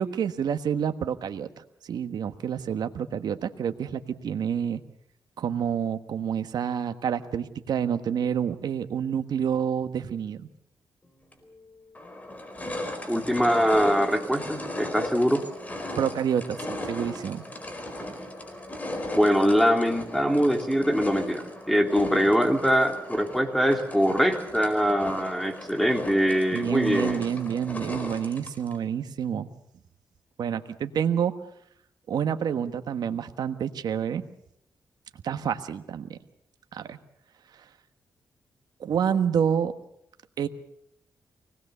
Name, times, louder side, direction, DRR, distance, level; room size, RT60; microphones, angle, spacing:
voice 1, 0.0-1.5 1.9-4.8 5.4-10.4 16.0-17.4 26.5-29.5 30.4-31.3 32.1-34.2 35.2-36.2 36.7-37.0 38.8-39.7 40.4-40.5, right 8 dB, 75° right, 9 dB, 1.4 m, -28 dB
sound 1, 11.3-11.4 11.9-28.8, left 1 dB, 20° left, 4.6 m, -37 dB
voice 2, 13.1-15.5 19.1-27.2, equal, ahead, 5 dB, 3.2 m, -23 dB
24.5 x 19.0 x 6.9 m, 0.73 s
cardioid pair, 85°, 7 cm